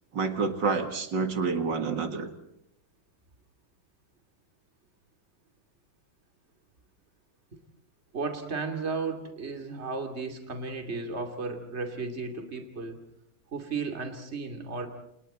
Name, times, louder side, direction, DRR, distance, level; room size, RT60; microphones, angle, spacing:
voice 1, 0.1-2.3, right 4 dB, 60° right, 7 dB, 2.5 m, -28 dB
voice 2, 8.1-13.0 13.5-14.9, right 4 dB, 30° right, 4 dB, 2.8 m, -34 dB
29.5 x 28.5 x 4.3 m, 0.77 s
omnidirectional pair, 2.2 m